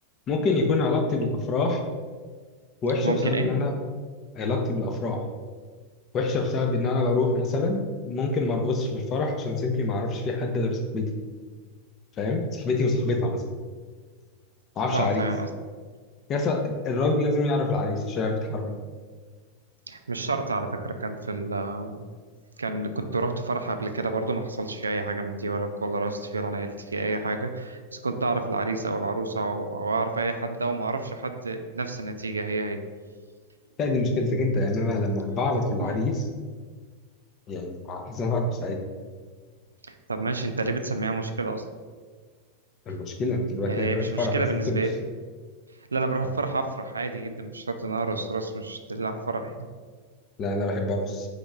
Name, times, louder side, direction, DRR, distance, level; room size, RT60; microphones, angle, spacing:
voice 1, 0.3-1.8 2.8-3.7 4.4-5.2 6.1-11.1 12.2-13.4 14.8-15.2 16.3-18.7 33.8-36.2 37.5-38.8 42.9-44.8 50.4-51.3, left 2 dB, 30° left, 3 dB, 0.6 m, -26 dB
voice 2, 3.0-3.5 14.9-15.5 19.9-22.0 22.6-32.8 35.8-35.9 40.1-41.6 43.7-44.9 45.9-49.5, right 3 dB, 75° right, 7 dB, 0.3 m, -29 dB
4.0 x 3.4 x 3.6 m, 1.5 s
figure-of-eight pair, 90°, 0 cm